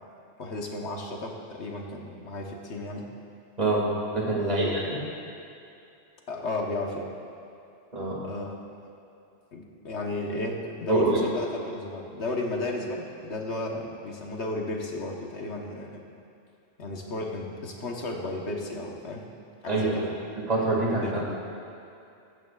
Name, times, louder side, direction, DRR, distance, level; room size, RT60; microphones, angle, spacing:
voice 1, 0.4-3.1 4.4-5.0 6.3-7.1 8.2-8.5 8.8-8.9 9.5-16.0 16.8-19.3 19.6-20.2 21.0-21.4, left 2 dB, 85° left, 1 dB, 1.5 m, -33 dB
voice 2, 4.1-5.0 7.9-8.2 10.9-11.2 19.7-20.0 20.4-21.2, right 2 dB, 35° right, -4 dB, 2.3 m, -25 dB
15.0 x 14.0 x 2.4 m, 2.6 s
omnidirectional pair, 1.1 m